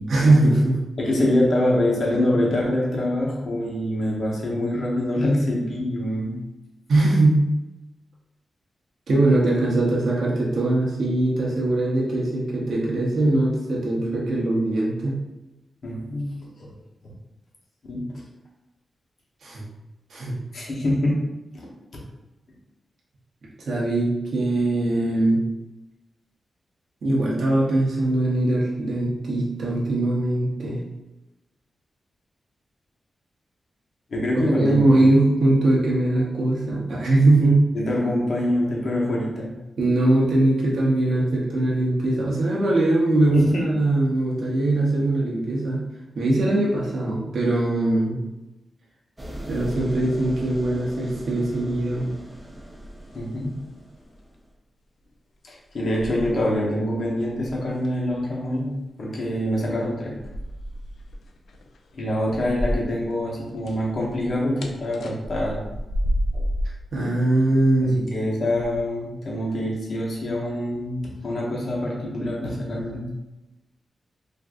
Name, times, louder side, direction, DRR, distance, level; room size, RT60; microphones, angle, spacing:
voice 1, 0.1-0.8 6.9-7.4 9.1-15.1 19.4-19.6 20.1-20.4 23.6-25.4 27.0-30.8 34.3-37.6 39.8-45.8 46.1-48.2 49.5-52.1 66.9-68.0, right 2 dB, 75° right, -5 dB, 0.7 m, -21 dB
voice 2, 1.0-6.4 15.8-16.3 17.9-18.1 20.5-21.2 21.5-21.7 34.1-35.0 37.7-39.5 43.3-43.7 53.1-53.6 55.5-58.7 59.0-60.1 61.9-65.6 66.3-66.4 67.8-73.1, left 1 dB, 60° left, -3 dB, 0.8 m, -25 dB
sound 1, 49.2-54.5, right 1 dB, 15° right, 0.5 m, -39 dB
sound 2, 52.7-53.6 53.9-54.2 55.1-55.2 55.7-56.8 57.2-58.1 60.1-63.1 63.4-66.8 67.6-68.0 68.6-68.8, equal, 85° left, 0.3 m, -31 dB
3.4 x 2.5 x 2.4 m, 1.0 s
wide cardioid pair, 120°, 0 cm